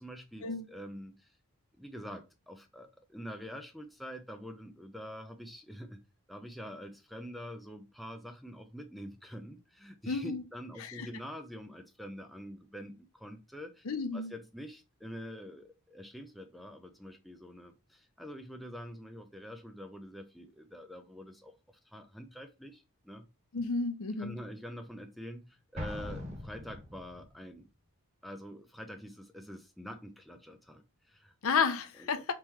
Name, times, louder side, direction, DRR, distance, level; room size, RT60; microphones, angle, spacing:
voice 1, 0.0-1.3 1.8-6.0 6.3-13.8 14.1-21.6 21.9-23.2 24.2-27.7 28.2-31.3 32.0-32.3, equal, ahead, 0.4 m, -46 dB
voice 2, 10.1-10.4 10.8-11.1 13.9-14.3 23.5-24.4 31.4-32.3, left 5 dB, 70° left, 0.6 m, -31 dB
Explosion, 25.8-27.4, left 1 dB, 30° right, 1.0 m, -41 dB
3.6 x 3.0 x 4.4 m
head